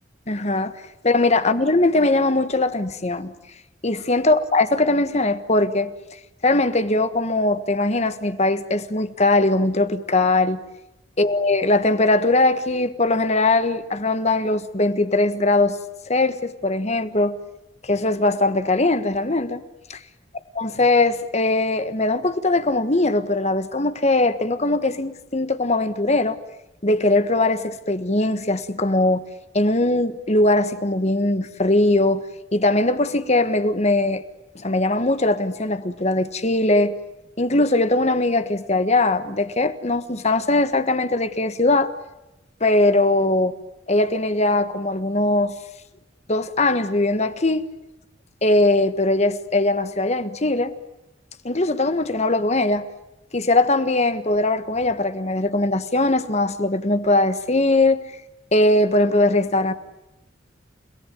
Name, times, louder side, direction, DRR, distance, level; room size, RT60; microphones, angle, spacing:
voice 1, 0.3-0.7 1.0-3.3 3.8-5.9 6.4-10.6 11.2-15.8 16.1-17.4 17.8-19.6 19.9-20.0 20.6-26.4 26.8-29.2 29.5-32.2 32.5-34.2 34.5-36.9 37.4-41.9 42.6-43.6 43.9-45.5 46.3-47.6 48.4-50.7 51.4-52.9 53.3-58.0 58.5-59.7, left 2 dB, 35° left, 1.5 m, -20 dB
30.0 x 18.5 x 9.5 m
head